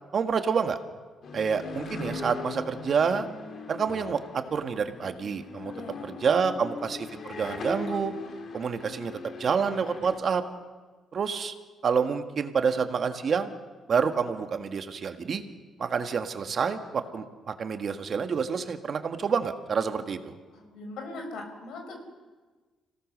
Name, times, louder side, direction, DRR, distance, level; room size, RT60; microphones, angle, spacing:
voice 1, 0.1-0.8 1.3-3.2 3.7-5.7 6.0-8.1 8.5-10.4 11.1-11.5 11.8-13.5 13.9-15.4 15.8-20.3, right 6 dB, 50° right, 7 dB, 1.7 m, -28 dB
sound 1, 1.2-10.2, left 4 dB, 55° left, 2.2 m, -40 dB
voice 2, 5.7-6.1 6.5-6.7 20.5-22.0, left 2 dB, 75° left, 4 dB, 4.9 m, -41 dB
26.0 x 17.5 x 6.7 m, 1.3 s
cardioid pair, 90°, 0 cm